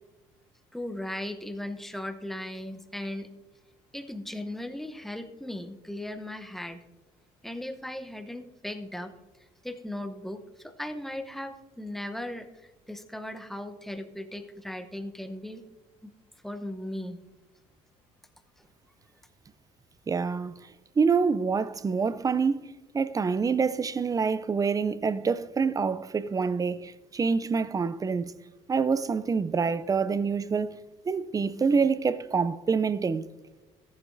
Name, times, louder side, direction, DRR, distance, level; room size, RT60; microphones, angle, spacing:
voice 1, 0.7-3.3 3.9-6.8 7.4-9.1 9.6-15.6 16.0-16.1 16.4-17.2 18.6-18.7, left 1 dB, ahead, 0.8 m, -37 dB
voice 2, 20.1-20.5 21.0-28.3 28.7-30.8 31.1-33.3, right 5 dB, 20° right, 0.4 m, -26 dB
14.0 x 11.0 x 2.6 m
cardioid pair, 110°, 17 cm